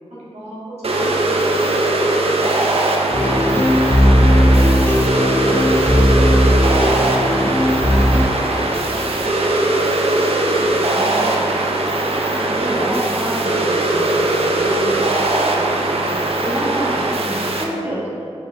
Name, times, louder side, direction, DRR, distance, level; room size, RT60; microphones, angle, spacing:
voice 1, 0.1-2.5 3.1-3.7 4.2-5.6 5.9-11.2 12.0-12.6 15.8-16.8, right 1 dB, 85° right, -9 dB, 1.3 m, -35 dB
sound 1, 0.8-17.6, right 2 dB, 65° right, 0.4 m, -20 dB
sound 2, 3.1-8.3, equal, 20° left, 0.4 m, -16 dB
voice 2, 3.3-3.8 10.6-11.6 12.3-15.9 16.4-18.2, right 1 dB, 15° right, -7 dB, 1.0 m, -28 dB
5.1 x 4.0 x 2.5 m, 2.4 s
wide cardioid pair, 65°, 11 cm